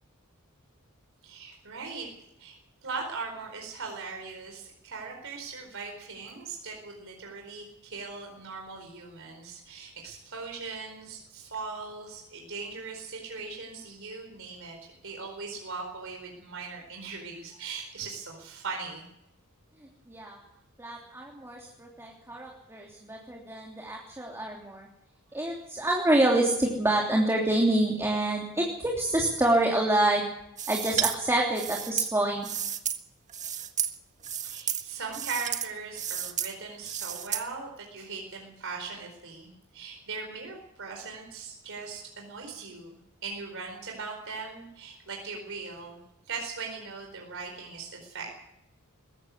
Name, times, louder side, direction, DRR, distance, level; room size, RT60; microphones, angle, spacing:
voice 1, 1.2-2.1 2.4-2.6 2.8-19.0 34.4-43.0 43.2-46.0 46.2-48.3, right 4 dB, 65° right, 1 dB, 4.6 m, -39 dB
voice 2, 20.1-20.4 20.8-24.9 25.3-30.3 30.7-32.5, right 1 dB, 10° right, -1 dB, 3.1 m, -27 dB
sound 1, 30.6-31.2 31.5-33.0 33.3-33.9 34.2-34.8 35.1-35.7 35.9-36.5 36.8-37.4, right 9 dB, 35° right, 1.6 m, -31 dB
21.5 x 15.5 x 8.5 m, 0.82 s
head